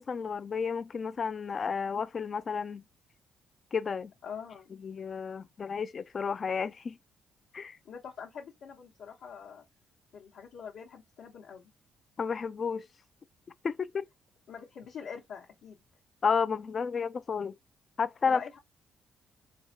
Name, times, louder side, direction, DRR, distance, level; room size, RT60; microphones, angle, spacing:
voice 1, 0.0-2.8 3.7-4.1 4.8-7.0 7.5-7.8 12.2-12.9 13.6-14.1 16.2-17.6 18.0-18.4, left 5 dB, 45° left, 0.3 m, -31 dB
voice 2, 4.2-4.7 7.8-9.6 10.1-11.7 14.5-15.8 18.2-18.6, left 7 dB, 80° left, 1.0 m, -44 dB
3.8 x 2.2 x 2.7 m
cardioid pair, 90°, 0 cm